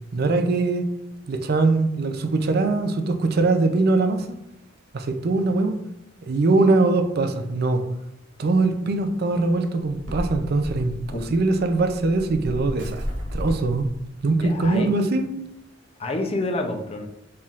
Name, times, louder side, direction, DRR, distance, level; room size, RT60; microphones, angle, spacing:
voice 1, 0.1-0.9 1.3-4.4 4.9-5.8 6.3-7.8 8.4-13.0 13.3-13.9 14.2-15.2, right 3 dB, 55° right, 0.5 m, -22 dB
sound 1, 9.9-14.7, equal, 75° right, 0.9 m, -33 dB
voice 2, 14.4-15.0 16.0-17.1, left 2 dB, 30° left, 0.5 m, -28 dB
4.4 x 3.6 x 2.4 m
head